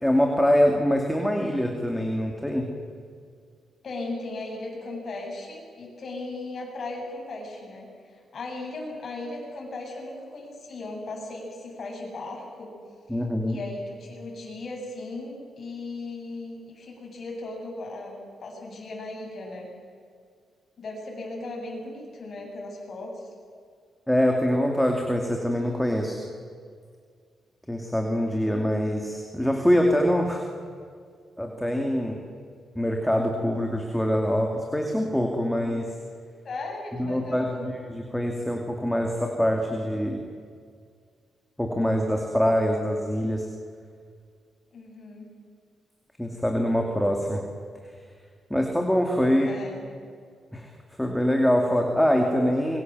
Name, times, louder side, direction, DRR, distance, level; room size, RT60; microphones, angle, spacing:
voice 1, 0.0-2.7 13.1-13.6 24.1-26.2 27.7-30.5 31.4-32.2 32.8-35.9 37.0-40.2 41.6-43.5 46.2-47.4 48.5-49.5 50.5-50.7 51.0-52.8, equal, 5° left, 1 dB, 2.5 m, -24 dB
voice 2, 3.8-12.7 13.1-13.2 13.5-19.7 20.8-23.3 36.4-37.7 44.7-45.3 49.4-49.8, left 2 dB, 45° left, 0 dB, 7.8 m, -37 dB
27.0 x 23.0 x 7.7 m, 2.1 s
cardioid pair, 140°, 0 cm